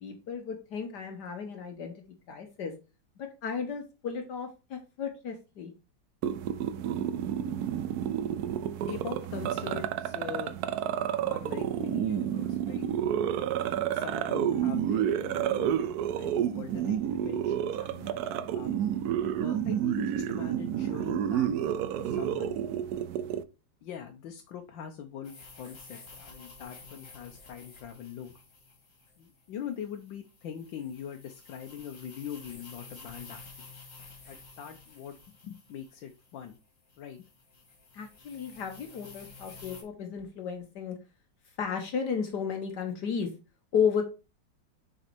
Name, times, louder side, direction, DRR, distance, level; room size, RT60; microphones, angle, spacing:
voice 1, 0.0-1.9 2.3-2.7 3.2-5.7 37.9-41.0 41.6-43.3 43.7-44.0, left 6 dB, 65° left, 4 dB, 1.5 m, -33 dB
sound 1, 6.2-23.4, right 10 dB, 70° right, 1.0 m, -30 dB
voice 2, 8.9-10.5 11.2-12.8 13.9-18.9 19.4-21.5 22.0-22.6 23.8-28.4 29.2-33.6 34.3-35.2 35.4-36.6 37.0-37.3, left 8 dB, 85° left, 5 dB, 1.5 m, -42 dB
sound 2, 25.2-39.8, left 4 dB, 45° left, 2.1 m, -51 dB
6.7 x 4.1 x 4.4 m, 0.30 s
omnidirectional pair, 2.0 m